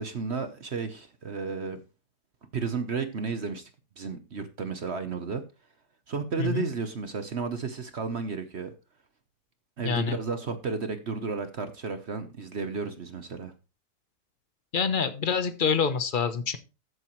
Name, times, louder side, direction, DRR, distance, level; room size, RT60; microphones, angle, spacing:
voice 1, 0.0-1.8 2.5-3.7 4.0-5.4 6.1-8.7 9.8-13.5, right 5 dB, 50° right, 1.0 m, -32 dB
voice 2, 9.8-10.2 14.7-16.6, left 6 dB, 40° left, 0.9 m, -26 dB
13.5 x 7.9 x 3.1 m
omnidirectional pair, 1.7 m